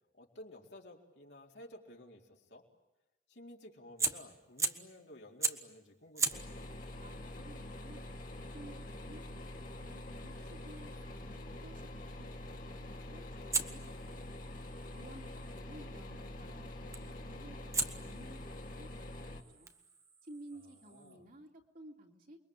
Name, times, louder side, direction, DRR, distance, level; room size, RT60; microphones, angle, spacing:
voice 1, 0.2-2.6 3.3-6.4 20.5-21.3, left 1 dB, 75° left, 0 dB, 4.2 m, -54 dB
Fire, 4.0-5.0 5.4-5.8 6.2-11.1 13.5-15.6 16.9-17.2 17.7-21.2, right 4 dB, 20° right, 1.2 m, -40 dB
sound 1, 6.3-19.4, left 1 dB, 50° left, 2.4 m, -46 dB
voice 2, 7.0-8.1 8.5-13.8 14.1-14.4 14.9-19.1 19.5-19.7 20.2-22.5, right 1 dB, 55° right, 1 dB, 3.1 m, -55 dB
28.5 x 22.5 x 8.9 m, 0.96 s
head